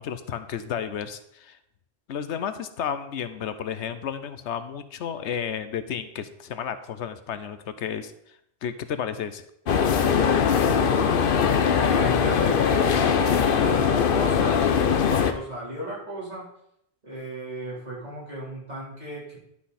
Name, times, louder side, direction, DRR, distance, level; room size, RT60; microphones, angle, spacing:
voice 1, 0.0-1.6 2.1-8.4 8.6-9.4, left 8 dB, 85° left, 11 dB, 1.0 m, -32 dB
sound 1, 9.7-15.3, left 7 dB, 55° left, 0.8 m, -21 dB
voice 2, 11.8-16.5 17.0-19.4, right 1 dB, 40° right, -7 dB, 4.0 m, -35 dB
11.5 x 5.9 x 4.2 m, 0.75 s
omnidirectional pair, 1.2 m